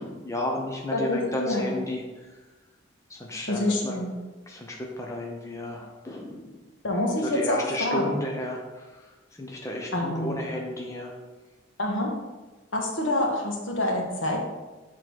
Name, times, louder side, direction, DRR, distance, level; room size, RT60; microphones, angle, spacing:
voice 1, 0.0-2.3 3.1-3.9 4.5-6.6 7.2-9.1 9.4-11.1, left 1 dB, 15° left, -1 dB, 0.6 m, -33 dB
voice 2, 0.9-1.7 3.5-4.1 6.8-8.2 9.9-10.4 11.8-12.1 12.7-14.5, left 1 dB, 75° left, 0 dB, 1.3 m, -27 dB
6.5 x 3.8 x 4.6 m, 1.2 s
head